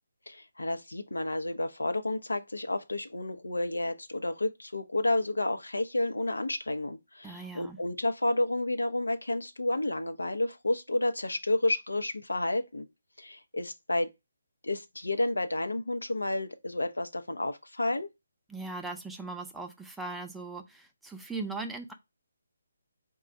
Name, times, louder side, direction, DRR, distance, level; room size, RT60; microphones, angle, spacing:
voice 1, 0.3-12.9 13.2-14.1 14.6-18.1, left 2 dB, 85° left, 0.7 m, -31 dB
voice 2, 7.2-7.8 18.5-21.9, right 3 dB, 5° right, 0.5 m, -39 dB
4.1 x 2.3 x 4.6 m
figure-of-eight pair, 150°, 0 cm